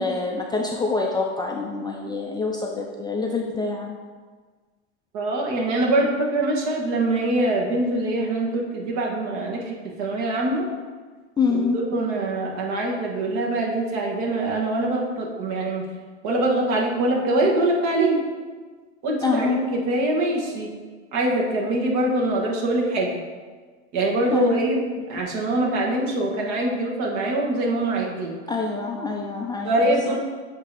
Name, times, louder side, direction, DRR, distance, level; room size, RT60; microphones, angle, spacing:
voice 1, 0.0-3.9 11.4-11.8 19.2-19.6 24.3-24.6 28.5-29.8 30.1-30.2, left 4 dB, 10° left, -1 dB, 0.4 m, -25 dB
voice 2, 5.1-10.7 11.5-15.8 16.2-18.2 19.0-20.7 21.1-23.1 23.9-24.8 25.1-28.3 29.6-30.2, right 1 dB, 55° right, -2 dB, 1.5 m, -23 dB
7.8 x 2.9 x 4.8 m, 1.5 s
hypercardioid pair, 105°, 35 cm